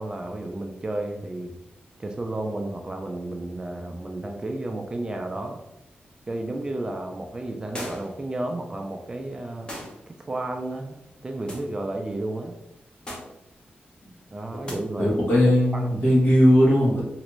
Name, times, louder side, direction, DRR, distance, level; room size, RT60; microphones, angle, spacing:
voice 1, 0.0-1.5 2.0-5.6 6.3-9.7 10.1-12.5 14.3-15.9, right 2 dB, 20° right, 3 dB, 0.3 m, -32 dB
sound 1, 7.7-8.2 9.7-10.0 11.5-11.7 13.1-13.4 14.6-14.8, equal, 25° left, 0.7 m, -36 dB
voice 2, 15.0-17.0, equal, 65° left, -5 dB, 1.3 m, -18 dB
3.1 x 2.5 x 3.0 m, 0.86 s
wide cardioid pair, 175°, 4 cm